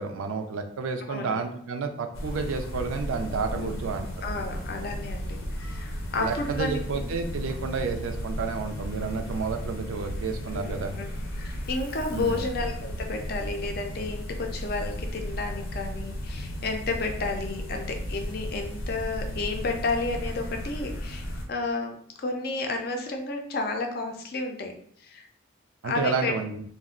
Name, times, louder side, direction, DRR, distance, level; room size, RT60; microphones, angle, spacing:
voice 1, 0.0-4.1 6.2-11.0 12.1-12.4 25.8-26.6, right 4 dB, 85° right, 6 dB, 0.4 m, -30 dB
voice 2, 1.1-1.4 3.5-3.8 4.2-7.0 10.5-11.1 11.4-24.7 25.0-25.3 25.8-26.3, left 3 dB, 50° left, 4 dB, 0.4 m, -32 dB
sound 1, 2.1-21.4, equal, 90° left, 0.6 m, -35 dB
2.4 x 2.1 x 3.6 m, 0.62 s
head